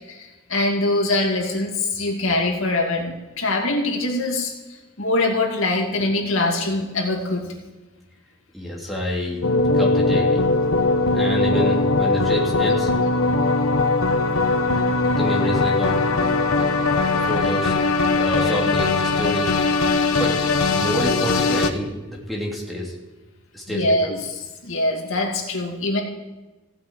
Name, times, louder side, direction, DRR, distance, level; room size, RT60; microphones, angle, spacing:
voice 1, 0.1-4.5 5.0-7.4 23.7-26.0, left 2 dB, 65° left, 0 dB, 2.4 m, -23 dB
voice 2, 8.5-9.4 9.7-10.4 11.1-12.9 15.2-16.0 17.1-17.8 18.1-19.5 20.1-22.9 23.5-24.1, equal, ahead, -4 dB, 3.1 m, -27 dB
sound 1, 9.4-21.7, left 3 dB, 80° left, 1.2 m, -20 dB
15.5 x 7.8 x 9.1 m, 1.2 s
head